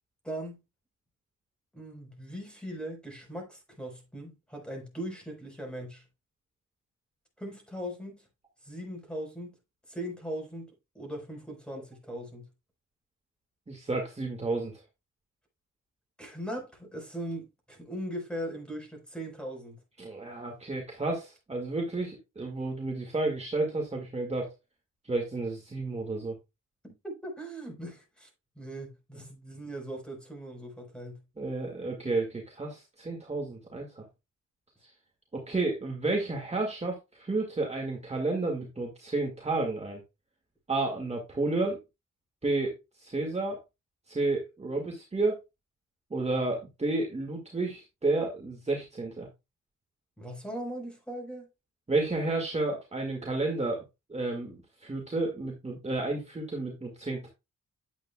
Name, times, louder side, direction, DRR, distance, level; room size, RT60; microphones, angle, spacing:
voice 1, 0.2-0.6 1.7-6.0 7.4-8.2 8.6-9.5 9.9-10.7 10.9-12.5 16.2-19.8 26.8-28.3 28.6-31.2 50.2-51.5, right 1 dB, 5° left, 4.4 m, -39 dB
voice 2, 13.7-14.8 20.0-24.5 25.0-26.4 31.4-34.1 34.8-34.9 35.3-40.0 40.7-41.8 42.4-43.6 44.1-45.4 46.1-49.3 51.9-53.8 54.1-57.3, right 2 dB, 20° right, 2.0 m, -31 dB
9.8 x 8.0 x 2.3 m
wide cardioid pair, 130°, 31 cm